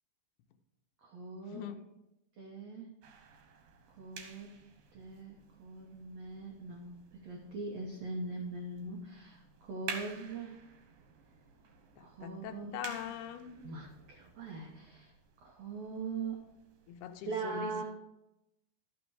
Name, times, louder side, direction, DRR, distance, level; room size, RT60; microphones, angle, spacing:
voice 1, 1.0-1.7 2.4-2.9 4.0-4.6 4.9-10.6 12.0-12.8 13.6-15.1 15.4-16.4 17.3-17.8, right 3 dB, 85° right, 0 dB, 1.4 m, -41 dB
sound 1, 3.0-17.2, right 6 dB, 65° right, 2.6 m, -51 dB
voice 2, 12.0-13.6 16.9-17.8, left 10 dB, 85° left, 7 dB, 2.7 m, -42 dB
12.0 x 6.0 x 4.7 m, 0.90 s
omnidirectional pair, 4.6 m